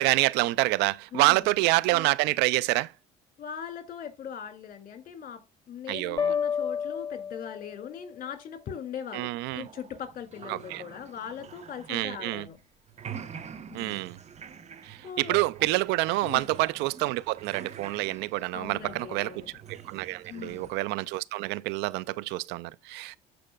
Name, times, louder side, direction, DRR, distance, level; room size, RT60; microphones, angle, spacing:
voice 1, 0.0-2.9 5.9-6.3 9.1-9.7 10.5-10.8 11.9-12.5 13.7-14.2 14.8-19.4 19.7-23.2, right 20 dB, 70° right, 0.4 m, -27 dB
voice 2, 1.1-1.5 3.4-5.4 5.7-12.6 13.7-14.1 15.0-15.4 16.2-16.5 18.5-19.5 20.3-20.7, left 8 dB, 50° left, 2.4 m, -40 dB
sound 1, 6.2-8.1, left 7 dB, 20° left, 0.7 m, -30 dB
sound 2, 9.6-12.6 12.9-20.7, right 7 dB, 40° right, 1.1 m, -46 dB
14.5 x 4.9 x 2.3 m
supercardioid pair, 80°, 18 cm